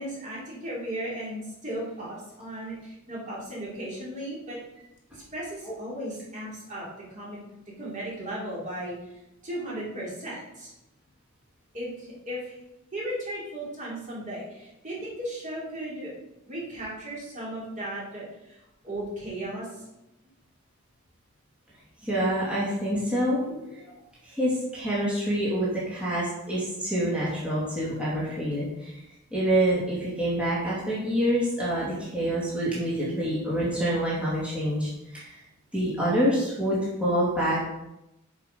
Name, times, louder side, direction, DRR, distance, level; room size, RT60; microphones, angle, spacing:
voice 1, 0.0-4.6 5.1-7.4 7.8-9.0 9.4-10.7 11.7-12.6 12.9-16.1 16.5-18.6 18.8-19.8, right 1 dB, 35° right, -6 dB, 3.4 m, -36 dB
voice 2, 22.0-23.9 24.2-29.0 29.3-35.4 35.7-37.6, right 1 dB, 5° right, -8 dB, 2.4 m, -27 dB
7.4 x 6.6 x 5.3 m, 0.91 s
head